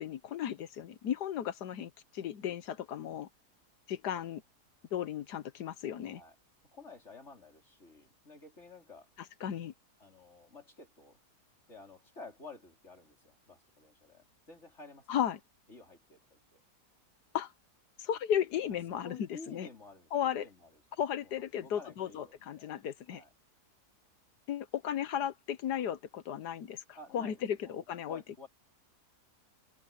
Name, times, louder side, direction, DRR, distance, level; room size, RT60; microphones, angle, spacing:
voice 1, 0.0-3.3 3.9-4.4 4.9-6.2 9.4-9.7 15.1-15.4 17.3-17.5 18.0-19.7 20.1-20.5 21.0-23.2 24.5-26.8 27.1-28.2, left 9 dB, 80° left, 1.5 m, -35 dB
voice 2, 6.7-9.1 10.0-11.2 11.7-15.2 15.7-16.6 19.0-20.8 21.2-22.7 23.1-23.3 26.9-28.5, left 3 dB, 45° left, 4.9 m, -52 dB
omnidirectional pair, 1.7 m